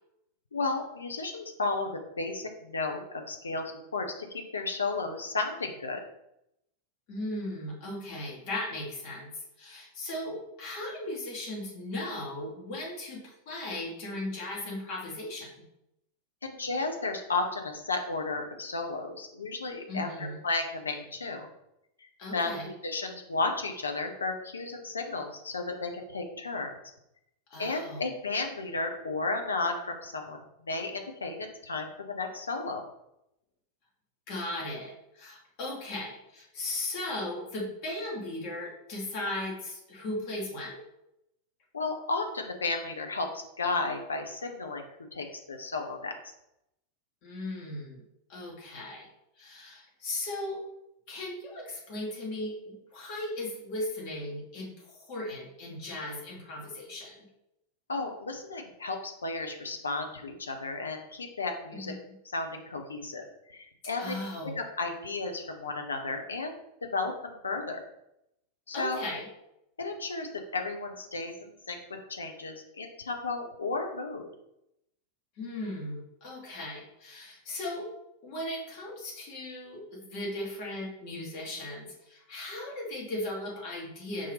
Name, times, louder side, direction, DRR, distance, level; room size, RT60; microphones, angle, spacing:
voice 1, 0.5-6.0 16.4-21.5 22.3-26.7 27.6-32.8 41.7-44.8 45.1-46.1 57.9-61.9 62.3-64.1 64.5-67.8 68.7-69.0 69.8-71.8 72.1-74.3, left 3 dB, 75° left, 4 dB, 0.6 m, -33 dB
voice 2, 7.1-15.5 19.9-20.4 22.2-22.7 27.5-28.0 34.3-40.8 47.2-48.0 48.3-49.1 49.4-50.6 51.1-57.2 61.7-62.1 64.0-64.6 68.7-69.3 75.4-77.9 78.2-84.3, left 1 dB, 45° left, -2 dB, 1.1 m, -37 dB
5.3 x 2.8 x 3.4 m, 0.83 s
figure-of-eight pair, 90°, 0 cm